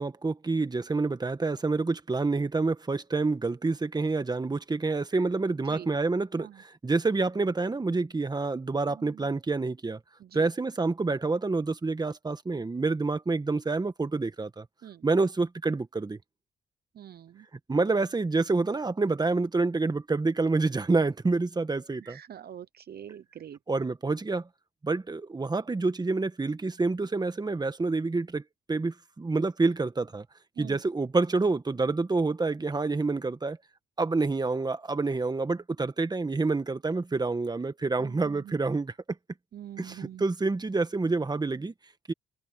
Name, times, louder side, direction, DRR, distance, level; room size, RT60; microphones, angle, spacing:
voice 1, 0.0-10.0 10.3-14.6 15.0-16.2 17.7-22.2 23.7-24.5 24.8-28.4 28.7-30.2 30.6-33.6 34.0-38.9 39.8-41.7 42.1-42.2, right 3 dB, 20° right, 1.6 m, -28 dB
voice 2, 17.0-17.4 22.0-23.6 30.6-30.8 38.0-38.5 39.5-40.2, right 10 dB, 50° right, 0.9 m, -44 dB
cardioid pair, 90°, 20 cm